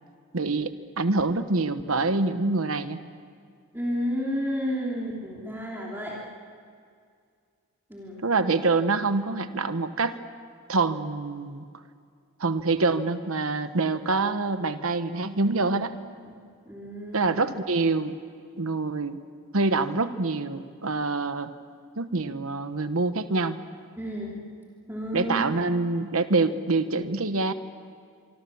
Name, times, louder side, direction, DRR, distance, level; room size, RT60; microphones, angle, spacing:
voice 1, 0.3-3.0 8.2-10.2 10.7-11.6 12.4-15.9 17.1-18.2 18.6-19.2 19.5-21.5 22.0-23.6 25.1-27.5, right 3 dB, 70° right, 11 dB, 1.1 m, -25 dB
voice 2, 3.7-6.2 7.9-8.2 15.5-15.7 16.3-16.4 16.7-17.4 24.0-24.4 24.9-25.6, equal, 10° right, -4 dB, 3.1 m, -31 dB
25.5 x 24.5 x 7.1 m, 2.2 s
head